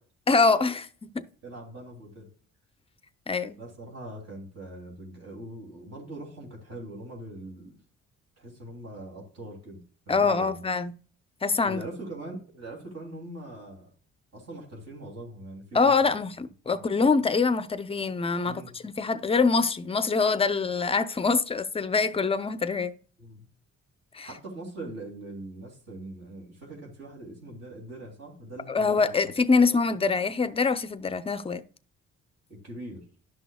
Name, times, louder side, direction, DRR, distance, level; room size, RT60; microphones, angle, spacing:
voice 1, 0.3-1.2 3.3-3.6 10.1-10.9 11.4-11.8 15.7-22.9 24.1-24.3 28.7-31.6, left 4 dB, 20° left, 0.6 m, -24 dB
voice 2, 1.4-2.3 3.6-7.8 8.4-9.8 10.1-10.7 11.6-13.9 14.3-15.9 16.9-17.1 18.4-18.8 23.2-23.5 24.2-29.3 29.5-29.6 32.5-33.0, right 1 dB, 55° right, 2.7 m, -42 dB
11.0 x 6.1 x 2.2 m
cardioid pair, 90°, 30 cm